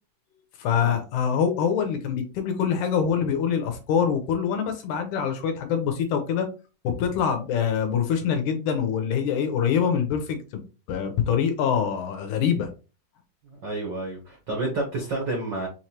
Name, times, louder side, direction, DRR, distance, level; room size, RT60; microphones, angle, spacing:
voice 1, 0.6-6.5 6.8-10.6 10.9-12.7, left 7 dB, 75° left, 6 dB, 2.1 m, -24 dB
voice 2, 13.4-15.7, right 2 dB, 70° right, -1 dB, 1.0 m, -30 dB
5.7 x 3.1 x 2.9 m, 0.32 s
omnidirectional pair, 4.0 m